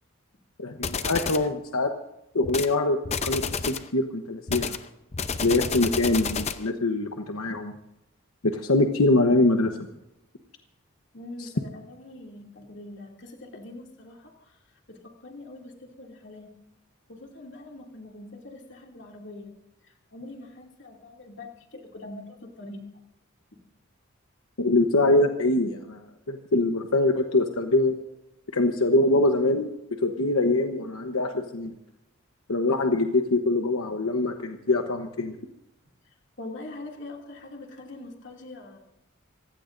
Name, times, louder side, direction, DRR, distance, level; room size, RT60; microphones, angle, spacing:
voice 1, 0.6-1.9 2.3-3.4 3.9-4.7 5.4-7.7 8.4-9.8 24.6-27.9 28.5-29.7 30.0-31.7 32.5-35.4, left 2 dB, 85° left, 5 dB, 1.1 m, -23 dB
sound 1, 0.8-1.5 2.4-2.7 3.0-3.9 4.5-6.7, left 5 dB, 30° left, 0.7 m, -30 dB
voice 2, 11.1-16.5 17.1-19.5 19.8-22.8 36.0-38.8, left 2 dB, 55° left, 0 dB, 2.7 m, -43 dB
26.5 x 16.5 x 2.6 m, 0.87 s
head